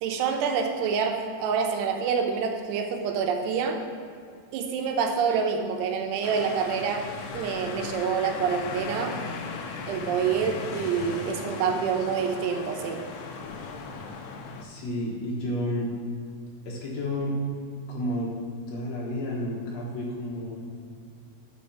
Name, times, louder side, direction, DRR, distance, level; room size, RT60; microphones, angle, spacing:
voice 1, 0.0-3.8 4.5-7.1 7.3-9.1 9.9-13.0, right 6 dB, 85° right, 3 dB, 2.9 m, -27 dB
sound 1, 6.2-14.6, left 4 dB, 90° left, 2.8 m, -37 dB
voice 2, 14.6-15.9 16.7-17.4 17.9-18.3 18.7-20.6, left 1 dB, 65° left, -3 dB, 2.7 m, -31 dB
6.3 x 6.1 x 7.1 m, 2.3 s
omnidirectional pair, 4.8 m